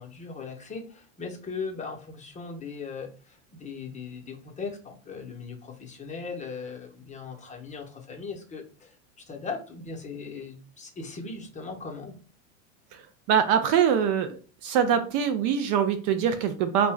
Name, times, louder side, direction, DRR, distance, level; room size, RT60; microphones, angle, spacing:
voice 1, 0.0-12.2, left 4 dB, 20° left, 1 dB, 0.7 m, -38 dB
voice 2, 13.3-14.4 14.6-16.9, right 8 dB, 45° right, 9 dB, 0.5 m, -23 dB
2.6 x 2.1 x 3.2 m, 0.39 s
hypercardioid pair, 85°, 40 cm